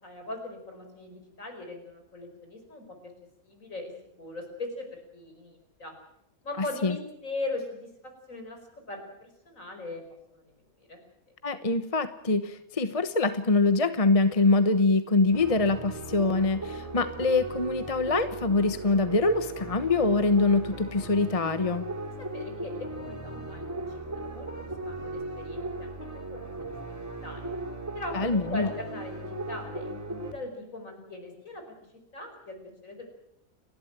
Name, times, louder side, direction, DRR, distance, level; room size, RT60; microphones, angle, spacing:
voice 1, 0.0-3.1 3.4-3.9 4.2-5.9 6.4-8.6 8.9-10.0 10.3-10.4 10.8-11.0 22.2-27.5 27.9-31.8 32.1-33.2, left 2 dB, 65° left, 4 dB, 5.4 m, -40 dB
voice 2, 11.4-21.9 28.1-28.7, left 3 dB, 25° left, 11 dB, 1.1 m, -24 dB
sound 1, 15.3-30.3, right 2 dB, 10° right, 4.1 m, -37 dB
30.0 x 12.0 x 9.0 m, 0.80 s
omnidirectional pair, 1.5 m